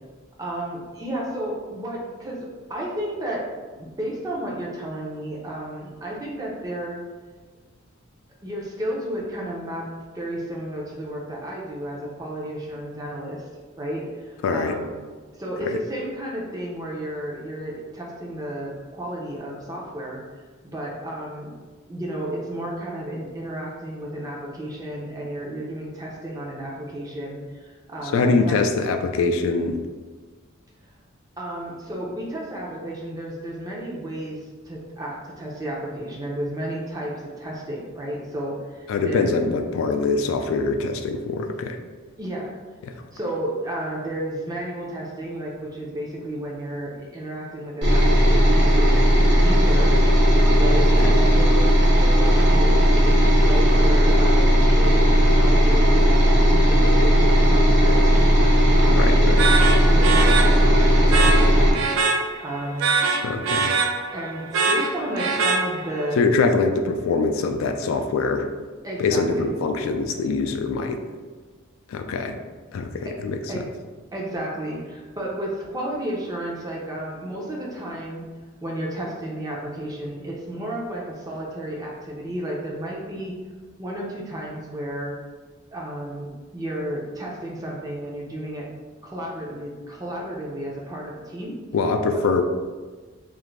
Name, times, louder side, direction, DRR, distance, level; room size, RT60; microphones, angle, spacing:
voice 1, 0.4-3.5 3.8-7.0 8.4-9.9 10.1-13.5 13.8-14.9 15.3-20.4 20.7-21.5 21.9-28.6 31.4-39.3 42.2-42.6 43.1-49.1 49.4-49.9 50.6-58.2 58.8-59.2 59.7-61.7 62.4-62.9 64.1-66.2 68.8-69.5 73.0-73.2 73.5-73.6 74.1-78.2 78.6-83.4 83.8-85.2 85.7-88.7 89.0-91.6 92.1-92.3, right 1 dB, 20° right, -3 dB, 0.5 m, -32 dB
voice 2, 14.4-14.7 15.7-15.8 28.1-29.8 38.9-41.8 42.8-42.9 51.0-51.1 58.9-59.5 63.2-63.7 66.2-68.5 69.0-71.0 71.9-72.4 72.7-73.6 91.7-92.4, left 4 dB, 80° left, 6 dB, 0.3 m, -23 dB
sound 1, 47.8-61.7, equal, 60° right, 0.7 m, -16 dB
sound 2, 59.4-66.1, right 4 dB, 85° right, 0.3 m, -24 dB
2.5 x 2.5 x 3.1 m, 1.4 s
head